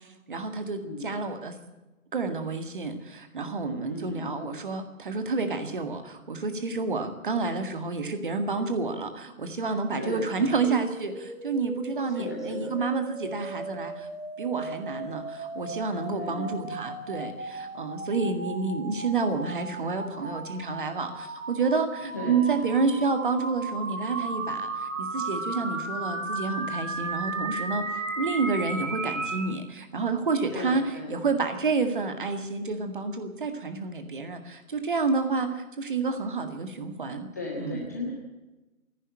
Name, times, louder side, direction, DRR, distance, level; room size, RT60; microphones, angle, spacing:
voice 1, 0.3-1.5 2.1-14.1 14.4-27.9 28.2-30.8 31.1-37.3 37.6-37.8, right 4 dB, 35° right, 7 dB, 2.0 m, -29 dB
voice 2, 0.8-1.2 3.9-4.5 10.0-10.7 12.0-12.8 16.1-16.7 22.1-22.8 30.5-31.2 37.3-38.1, left 3 dB, 10° left, -2 dB, 1.0 m, -37 dB
sound 1, 10.6-29.5, right 3 dB, 60° right, 3.9 m, -35 dB
27.0 x 11.0 x 8.7 m, 1.1 s
figure-of-eight pair, 155°, 43 cm